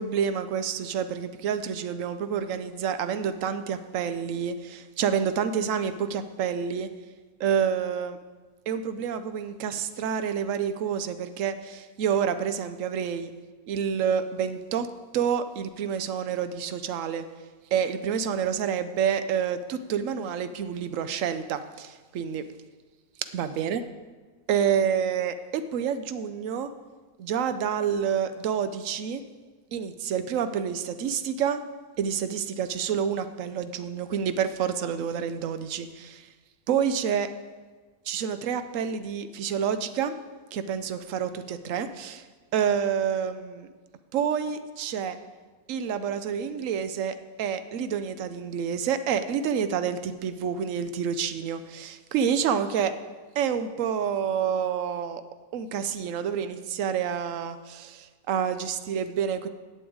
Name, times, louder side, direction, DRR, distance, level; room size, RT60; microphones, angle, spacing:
voice 1, 0.0-6.9 7.4-8.2 8.7-13.3 13.7-14.9 15.1-17.2 17.7-22.4 23.3-23.8 24.5-26.7 27.2-29.2 29.7-31.6 32.0-36.3 36.7-37.3 38.1-40.1 40.5-42.2 42.5-43.7 44.1-45.2 45.7-52.9 53.3-55.2 55.5-59.5, right 7 dB, 60° right, 10 dB, 1.0 m, -28 dB
8.3 x 7.0 x 8.6 m, 1.4 s
omnidirectional pair, 1.7 m